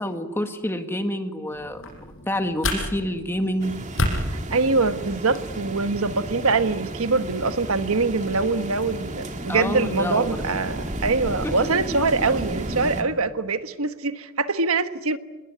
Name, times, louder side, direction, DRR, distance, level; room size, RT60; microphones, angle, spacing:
voice 1, 0.0-2.0 2.3-3.7 9.5-10.5 11.1-11.6 11.9-12.0, equal, 10° left, 6 dB, 1.8 m, -28 dB
sound 1, 1.5-5.5, left 1 dB, 70° left, 6.4 m, -31 dB
sound 2, 3.6-13.0, right 1 dB, 35° right, 2.1 m, -33 dB
voice 2, 4.3-15.2, right 3 dB, 85° right, 10 dB, 1.4 m, -23 dB
27.5 x 21.0 x 9.5 m, 1.2 s
head